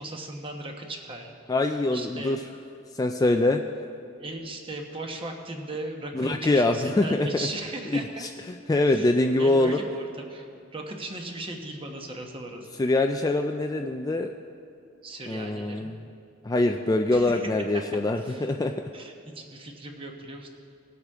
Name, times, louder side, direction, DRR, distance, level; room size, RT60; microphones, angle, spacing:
voice 1, 0.0-1.3 1.9-2.4 4.2-8.3 8.9-12.8 15.0-15.9 17.1-17.4 18.2-18.5 18.9-20.5, right 2 dB, 25° right, 2 dB, 1.1 m, -37 dB
voice 2, 1.5-2.4 2.9-3.6 6.1-7.3 7.9-8.3 8.7-9.8 12.8-14.3 15.3-16.0 16.4-18.7, left 2 dB, 20° left, 5 dB, 0.3 m, -24 dB
20.0 x 8.2 x 3.6 m, 2.6 s
head